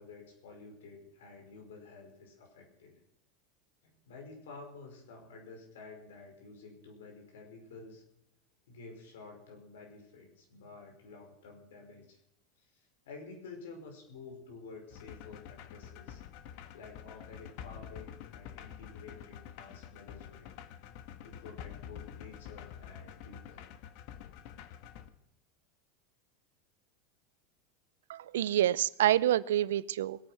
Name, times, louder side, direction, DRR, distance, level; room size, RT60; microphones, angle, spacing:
voice 1, 0.0-3.0 3.8-8.0 8.7-12.2 12.6-16.2 16.7-20.5 21.2-23.7, left 4 dB, 85° left, 2 dB, 5.4 m, -51 dB
sound 1, 14.9-25.1, left 9 dB, 60° left, 1.4 m, -48 dB
voice 2, 28.1-30.2, right 12 dB, 85° right, 20 dB, 0.5 m, -27 dB
21.0 x 9.2 x 5.9 m, 0.83 s
supercardioid pair, 115°, 0 cm